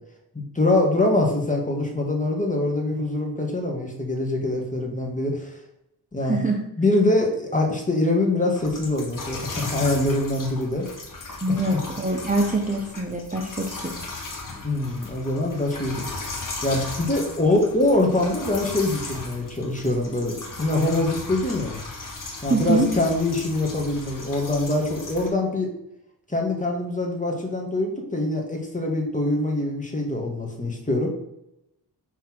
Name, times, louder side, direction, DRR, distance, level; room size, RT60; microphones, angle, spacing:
voice 1, 0.3-5.5 6.1-6.4 6.8-10.9 11.5-11.8 14.6-16.1 16.6-21.8 22.4-25.7 26.3-31.1, left 2 dB, 15° left, 0 dB, 2.2 m, -24 dB
voice 2, 6.2-6.6 11.4-14.0 22.5-22.9, right 2 dB, 15° right, 0 dB, 1.1 m, -24 dB
sound 1, 8.6-25.3, left 3 dB, 40° left, 2.0 m, -36 dB
5.8 x 4.3 x 6.2 m, 0.84 s
cardioid pair, 55°, 48 cm